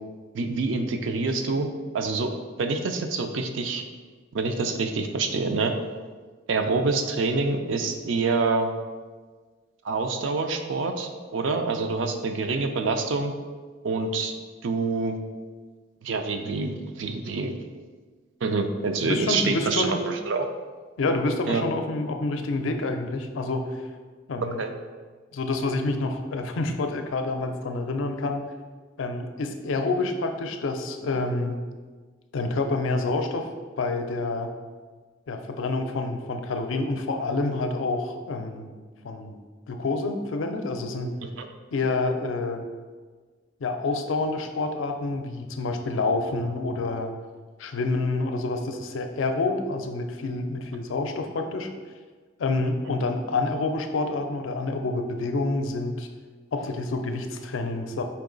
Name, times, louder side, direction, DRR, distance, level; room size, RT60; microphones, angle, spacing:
voice 1, 0.3-1.7 1.9-2.3 2.6-3.8 4.3-5.7 6.5-8.7 9.8-13.3 13.8-14.3 14.6-15.2 16.0-17.5 18.4-20.5 21.5-21.6 24.6-24.7 41.4-41.5, right 3 dB, 70° right, 6 dB, 0.4 m, -26 dB
voice 2, 19.0-20.1 21.0-23.7 24.3-24.6 25.3-28.4 29.0-31.6 32.3-33.5 33.8-34.5 35.3-38.7 39.0-39.3 39.7-41.1 41.7-42.7 43.6-47.1 47.6-51.7 52.4-56.1 56.5-58.0, left 3 dB, 85° left, 6 dB, 0.5 m, -28 dB
4.6 x 3.0 x 3.8 m, 1.4 s
head